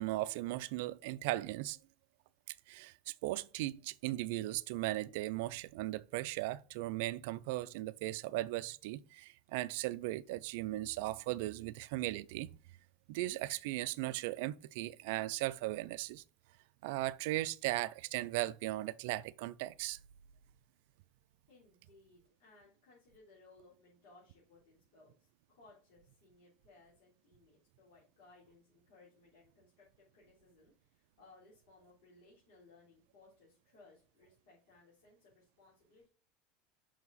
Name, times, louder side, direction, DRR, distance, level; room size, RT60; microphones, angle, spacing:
voice 1, 0.0-1.8 2.7-12.5 13.1-16.2 16.8-20.0, right 17 dB, 70° right, 0.4 m, -37 dB
voice 2, 21.5-36.1, left 3 dB, 75° left, 3.0 m, -63 dB
5.8 x 4.7 x 4.0 m
supercardioid pair, 150°, 0 cm